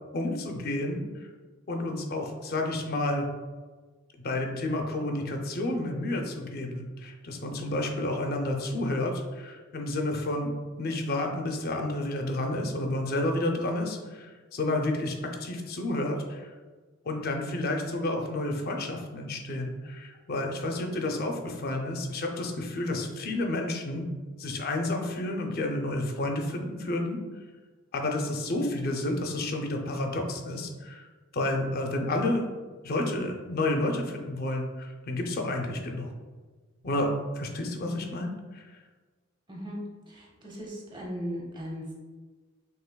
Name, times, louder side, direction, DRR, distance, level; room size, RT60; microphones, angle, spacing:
voice 1, 0.1-1.3 1.7-3.3 4.2-16.5 17.0-24.1 24.4-27.2 27.9-31.1 31.3-32.4 32.8-36.1 36.8-38.6, left 1 dB, 50° left, 3 dB, 0.6 m, -30 dB
voice 2, 40.1-41.9, equal, 25° right, -3 dB, 1.0 m, -37 dB
5.6 x 3.4 x 2.2 m, 1.4 s
head